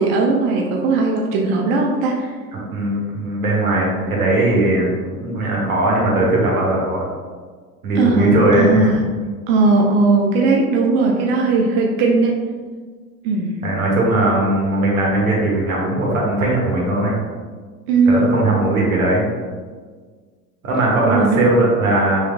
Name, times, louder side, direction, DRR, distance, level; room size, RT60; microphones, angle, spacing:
voice 1, 0.0-2.3 8.0-9.0 9.5-12.4 13.2-13.6 17.9-18.3 21.0-21.5, right 3 dB, 40° right, 0 dB, 0.4 m, -17 dB
voice 2, 2.5-7.0 7.8-8.9 13.6-17.2 18.1-19.3 20.6-22.2, right 2 dB, 70° right, -4 dB, 1.1 m, -18 dB
3.2 x 3.1 x 2.2 m, 1.5 s
figure-of-eight pair, 75°, 44 cm